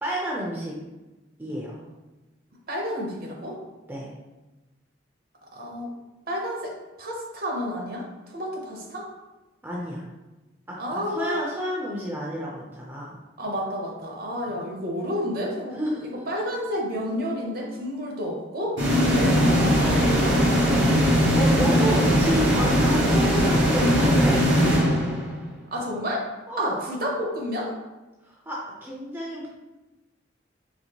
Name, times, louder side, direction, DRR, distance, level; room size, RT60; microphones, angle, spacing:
voice 1, 0.0-0.8 1.4-1.8 3.9-4.1 9.6-10.0 10.7-13.1 14.5-14.6 15.7-16.1 21.3-24.4 26.5-26.8 28.3-29.5, equal, 10° right, -4 dB, 0.5 m, -30 dB
voice 2, 2.7-3.6 5.5-6.0 6.3-9.1 10.8-11.4 13.4-18.8 19.1-21.0 25.7-26.3 26.6-27.7, equal, 50° right, -1 dB, 0.8 m, -30 dB
sound 1, 18.8-25.5, equal, 70° right, 1.4 m, -20 dB
4.3 x 3.0 x 2.9 m, 1.1 s
head